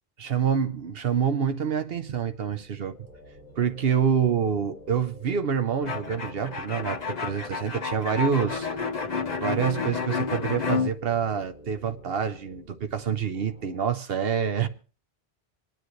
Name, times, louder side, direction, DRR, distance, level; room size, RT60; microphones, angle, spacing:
voice 1, 0.2-2.9 3.6-8.7 9.4-14.7, right 7 dB, 70° right, 1.0 m, -27 dB
sound 1, 2.3-13.9, equal, 50° right, 6.9 m, -49 dB
sound 2, 5.8-10.9, left 5 dB, 45° left, 1.2 m, -30 dB
27.0 x 9.3 x 3.1 m
omnidirectional pair, 1.0 m